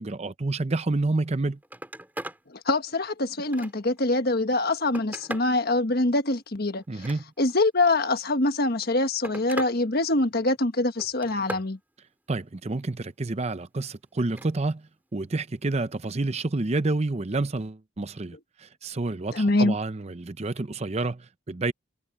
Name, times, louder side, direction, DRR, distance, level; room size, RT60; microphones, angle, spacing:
voice 1, 0.0-1.6 6.9-7.2 12.3-21.7, right 2 dB, 30° right, 0.6 m, -29 dB
Telephone, 1.2-1.3 1.6-2.4 2.9-4.0 4.6-5.6 6.8-7.6 8.6-9.8 10.1-10.6 11.0-11.7 14.2-14.5 15.9-16.0, right 1 dB, 10° right, 4.3 m, -39 dB
voice 2, 2.5-7.1 7.4-11.8 19.3-19.7, left 2 dB, 50° left, 1.5 m, -24 dB
head